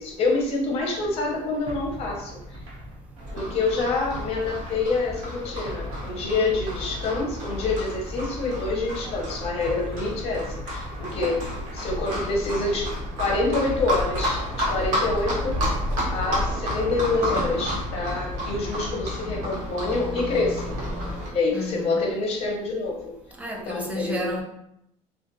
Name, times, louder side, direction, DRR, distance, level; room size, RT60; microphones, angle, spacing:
voice 1, 0.0-2.4 3.3-12.9 13.2-15.6 16.1-20.8 21.3-23.1 23.7-24.4, left 3 dB, 50° left, 0 dB, 0.7 m, -27 dB
sound 1, 0.8-19.0, equal, 45° right, 0.7 m, -42 dB
Livestock farm animals working animals, 3.2-21.3, equal, 70° right, 0.9 m, -30 dB
voice 2, 21.5-22.0 23.4-24.4, left 1 dB, 10° right, 0 dB, 0.4 m, -31 dB
2.5 x 2.4 x 2.6 m, 0.79 s
cardioid pair, 155°, 13 cm